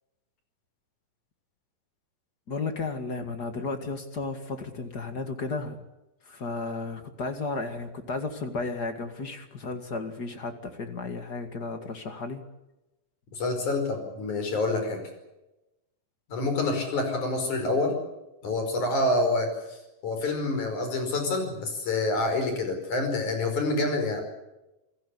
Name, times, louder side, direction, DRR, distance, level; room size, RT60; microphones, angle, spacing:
voice 1, 2.5-5.8 6.3-12.4, left 3 dB, 35° left, 7 dB, 2.0 m, -33 dB
voice 2, 13.4-15.0 16.3-17.9 18.4-24.2, left 2 dB, 60° left, 5 dB, 6.5 m, -27 dB
28.5 x 17.5 x 8.5 m, 0.99 s
omnidirectional pair, 3.9 m